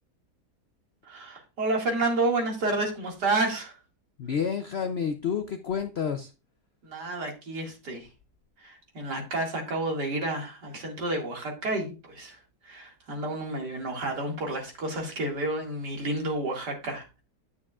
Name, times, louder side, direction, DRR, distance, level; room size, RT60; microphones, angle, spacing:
voice 1, 1.0-3.8 6.8-8.1 8.6-17.2, right 2 dB, 75° right, 1 dB, 2.8 m, -30 dB
voice 2, 4.2-6.3, left 7 dB, 70° left, 8 dB, 0.6 m, -29 dB
9.9 x 8.1 x 2.4 m, 0.30 s
omnidirectional pair, 1.8 m